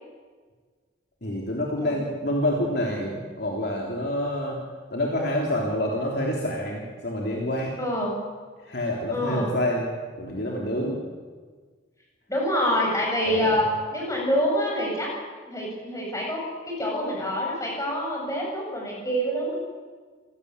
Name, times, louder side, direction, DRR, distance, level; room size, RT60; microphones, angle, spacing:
voice 1, 1.2-4.6 4.9-7.8 8.6-9.9 10.2-11.0 13.3-13.6, left 1 dB, 55° left, -1 dB, 3.6 m, -27 dB
voice 2, 7.8-8.2 9.1-9.5 12.3-13.7 13.9-15.1 15.4-19.6, equal, 15° left, -2 dB, 7.8 m, -26 dB
28.0 x 18.0 x 8.4 m, 1.5 s
head